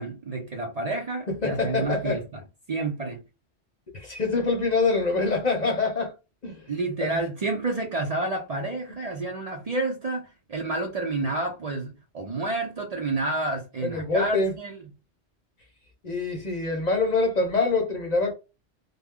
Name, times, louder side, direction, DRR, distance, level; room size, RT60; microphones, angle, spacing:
voice 1, 0.0-2.4 2.7-3.2 6.7-14.8, right 2 dB, 45° right, 0.6 m, -29 dB
voice 2, 1.3-2.2 3.9-6.1 6.4-6.7 7.0-7.1 13.8-14.5 16.0-18.3, left 3 dB, 45° left, 0.7 m, -25 dB
2.2 x 2.0 x 3.4 m
omnidirectional pair, 1.1 m